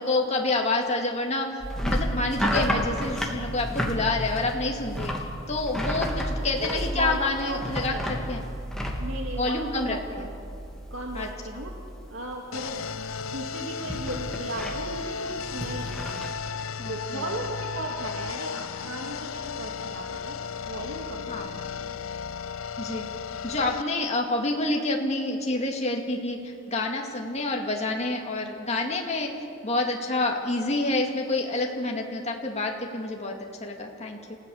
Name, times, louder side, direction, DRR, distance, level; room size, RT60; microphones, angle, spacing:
voice 1, 0.0-5.1 5.5-8.4 9.4-10.3 11.1-11.3 11.5-11.6 16.8-17.2 21.3-21.6 22.8-23.1 23.4-26.4 26.7-29.3 29.6-34.4, left 2 dB, 35° left, 1 dB, 2.1 m, -28 dB
sound 1, 1.6-11.7 12.0-12.5 12.8-16.3, equal, 5° left, 2.5 m, -31 dB
voice 2, 6.6-8.4 9.0-10.3 10.9-11.7 12.1-12.8 13.2-16.3 16.8-21.3 33.2-33.3, right 1 dB, 80° right, 0 dB, 2.1 m, -36 dB
sound 2, 12.5-23.8, left 6 dB, 90° left, 0.7 m, -35 dB
29.0 x 16.5 x 7.1 m, 2.6 s
head